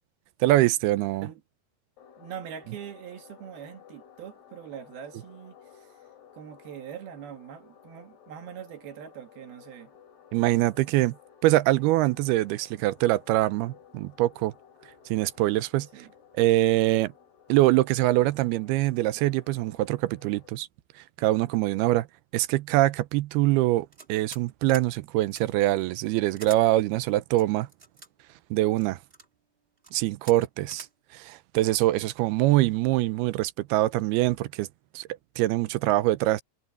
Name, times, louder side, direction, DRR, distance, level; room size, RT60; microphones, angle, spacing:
voice 1, 0.4-1.3 10.3-11.1 11.4-14.5 15.1-15.9 16.4-17.1 17.5-20.7 21.2-22.1 22.3-27.7 28.5-29.0 29.9-30.9 31.1-34.7 35.0-35.1 35.4-36.4, right 17 dB, 90° right, 2.7 m, -24 dB
sound 1, 2.0-20.5, left 8 dB, 80° left, 5.1 m, -55 dB
voice 2, 2.2-6.0 6.3-9.9 15.9-16.1, right 9 dB, 75° right, 3.6 m, -42 dB
sound 2, 23.9-24.4 24.7-24.9 25.3-25.4 26.4-26.6 27.4-28.1 28.8-29.3 29.8-29.9 30.2-30.4 30.7-30.9, right 3 dB, 35° right, 0.9 m, -45 dB
omnidirectional pair, 4.5 m